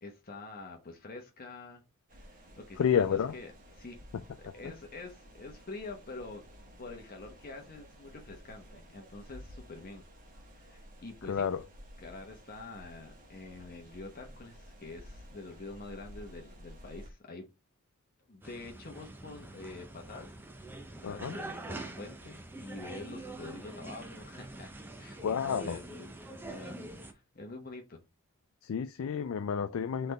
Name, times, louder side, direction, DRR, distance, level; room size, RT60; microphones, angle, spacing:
voice 1, 0.0-1.8 2.2-4.0 4.4-6.4 6.8-10.0 10.5-11.5 12.0-17.5 18.3-20.3 21.0-24.7 25.0-28.0, left 3 dB, 45° left, 0.9 m, -46 dB
sound 1, 2.1-17.1, equal, 40° right, 1.2 m, -53 dB
voice 2, 2.8-3.3 11.3-11.6 21.0-21.3 25.2-25.8 28.6-30.1, left 7 dB, 85° left, 0.4 m, -30 dB
sound 2, 18.4-27.1, right 2 dB, 10° right, 0.5 m, -45 dB
4.0 x 3.3 x 4.0 m
head